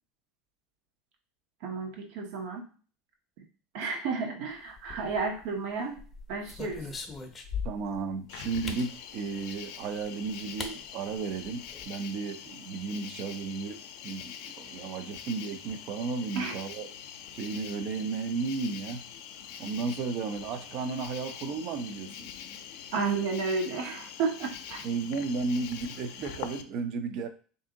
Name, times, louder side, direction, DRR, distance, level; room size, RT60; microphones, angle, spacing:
voice 1, 1.6-2.7 3.7-6.0 6.3-6.9 16.4-16.5 22.9-24.8 25.6-25.7, right 4 dB, 70° right, 3 dB, 0.8 m, -32 dB
sound 1, 4.8-5.5 6.0-8.0 8.7-8.9 10.0-10.1 10.6-10.7 11.1-11.2 11.4-11.9, left 5 dB, 20° left, 0.6 m, -39 dB
voice 2, 7.6-16.9 17.3-19.0 19.6-22.3 24.8-27.3, right 4 dB, 50° right, 9 dB, 0.5 m, -34 dB
Cricket, 8.3-26.6, left 8 dB, 70° left, 0.4 m, -44 dB
3.5 x 2.7 x 3.7 m, 0.40 s
supercardioid pair, 135°, 0 cm